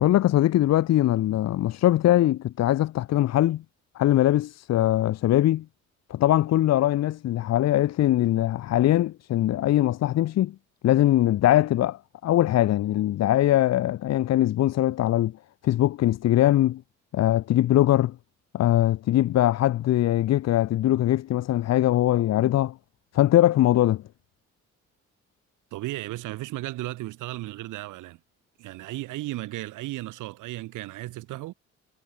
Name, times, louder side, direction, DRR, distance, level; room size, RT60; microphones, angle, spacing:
voice 1, 0.0-3.6 4.0-5.6 6.1-10.5 10.8-15.3 15.6-16.8 17.1-18.1 18.5-22.7 23.1-24.0, left 13 dB, 60° left, 0.6 m, -21 dB
voice 2, 25.7-28.2 28.6-31.5, right 17 dB, 90° right, 1.1 m, -35 dB
cardioid pair, 90°, 30 cm